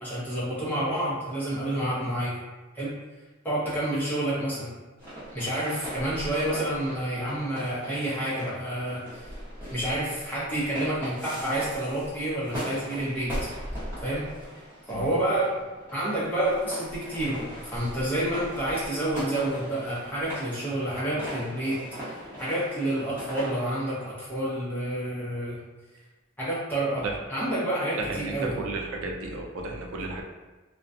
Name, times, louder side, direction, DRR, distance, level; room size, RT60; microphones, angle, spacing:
voice 1, 0.0-2.3 2.7-2.9 3.4-4.7 5.3-9.2 9.7-13.4 14.0-14.3 14.9-15.5 15.9-21.8 22.1-25.6 26.4-28.6, right 1 dB, 10° left, -10 dB, 0.7 m, -29 dB
sound 1, 5.0-24.1, equal, 10° right, 1.0 m, -40 dB
voice 2, 28.0-30.2, right 3 dB, 90° right, 1 dB, 0.4 m, -33 dB
2.3 x 2.2 x 2.6 m, 1.2 s
head